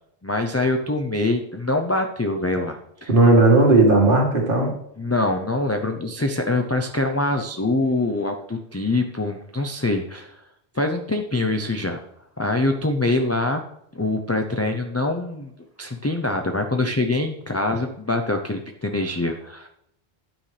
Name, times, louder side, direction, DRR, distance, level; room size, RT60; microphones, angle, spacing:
voice 1, 0.2-3.1 4.6-10.3 10.7-12.0 12.4-13.6 13.9-15.5 15.8-19.7, left 2 dB, 20° left, 4 dB, 0.5 m, -24 dB
voice 2, 3.1-4.7, right 2 dB, 55° right, 0 dB, 2.1 m, -15 dB
9.8 x 8.7 x 3.3 m, 0.75 s
omnidirectional pair, 1.1 m